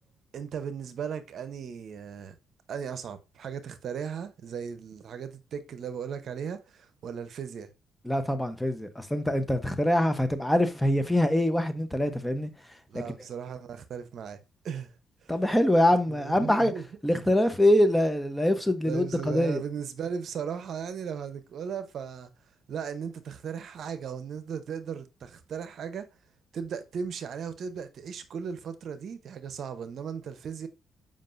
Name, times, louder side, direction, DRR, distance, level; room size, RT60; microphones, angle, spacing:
voice 1, 0.3-2.4 2.7-7.7 12.9-14.4 14.6-14.9 15.2-15.4 16.1-16.8 17.2-17.5 18.8-22.3 22.7-26.1 26.5-30.7, right 7 dB, 65° right, 0.8 m, -37 dB
voice 2, 8.0-12.5 15.3-16.7 17.0-19.6, left 1 dB, 5° left, 0.9 m, -24 dB
7.4 x 5.2 x 2.6 m
cardioid pair, 90°, 0 cm